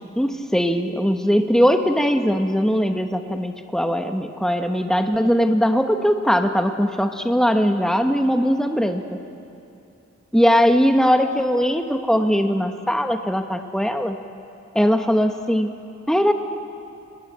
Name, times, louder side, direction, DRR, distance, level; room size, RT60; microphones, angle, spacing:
voice 1, 0.2-9.2 10.3-14.2 14.7-15.7 16.1-16.3, equal, 5° left, 5 dB, 0.9 m, -20 dB
23.5 x 19.5 x 9.3 m, 2.6 s
head